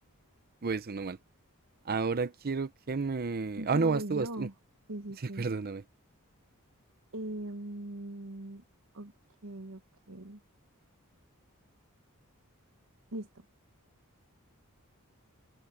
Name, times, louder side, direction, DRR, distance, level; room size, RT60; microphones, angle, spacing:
voice 1, 0.6-1.2 1.9-4.5 5.4-5.8, right 4 dB, 45° right, 0.7 m, -31 dB
voice 2, 3.6-4.5 4.9-5.5 7.1-8.6 8.9-9.1 9.4-9.8 10.1-10.4 13.1-13.5, right 1 dB, 65° right, 1.5 m, -40 dB
open air
head